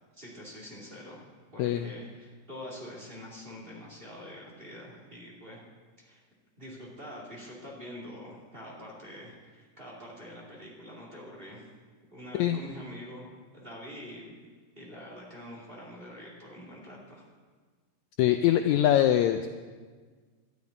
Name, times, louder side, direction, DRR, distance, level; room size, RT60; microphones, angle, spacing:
voice 1, 0.1-1.2 1.5-5.6 6.0-6.2 6.6-11.7 12.1-14.3 14.8-17.3, equal, 20° right, -3 dB, 2.4 m, -45 dB
voice 2, 18.2-19.5, left 12 dB, 80° left, 7 dB, 1.7 m, -23 dB
12.5 x 7.2 x 9.5 m, 1.5 s
omnidirectional pair, 3.7 m